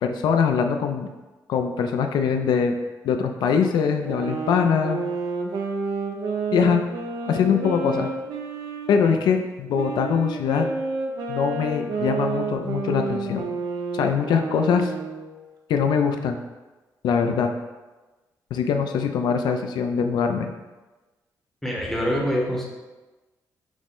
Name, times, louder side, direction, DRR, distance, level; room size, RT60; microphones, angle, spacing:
voice 1, 0.0-1.1 1.5-2.7 3.0-5.0 6.5-6.8 7.3-8.1 8.9-10.7 11.3-13.5 13.9-14.9 15.7-16.4 17.0-17.5 18.5-20.5, left 6 dB, 85° left, 5 dB, 0.4 m, -22 dB
sound 1, 4.0-9.3 9.7-15.4, right 4 dB, 70° right, 0.6 m, -30 dB
voice 2, 21.6-22.7, equal, 5° left, -3 dB, 0.7 m, -25 dB
6.1 x 2.1 x 3.6 m, 1.2 s
wide cardioid pair, 170°, 7 cm